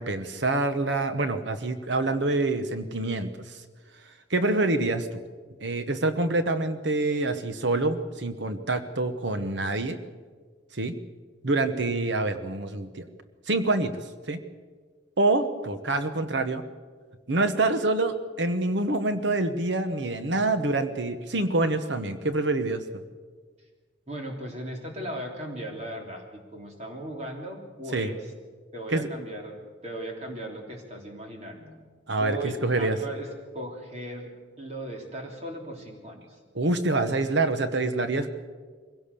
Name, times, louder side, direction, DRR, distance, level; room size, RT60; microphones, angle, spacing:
voice 1, 0.0-3.3 4.3-5.2 5.6-10.0 10.7-10.9 11.4-13.1 13.5-14.0 14.3-14.4 15.2-16.6 17.3-22.8 27.9-28.1 28.9-29.1 32.1-33.0 36.5-38.3, right 2 dB, 70° right, 10 dB, 1.1 m, -26 dB
voice 2, 24.1-28.2 28.7-29.5 29.8-31.7 32.2-33.3 33.5-34.3 34.6-36.2, right 1 dB, 35° right, 1 dB, 3.3 m, -37 dB
22.5 x 17.0 x 6.9 m, 1.5 s
head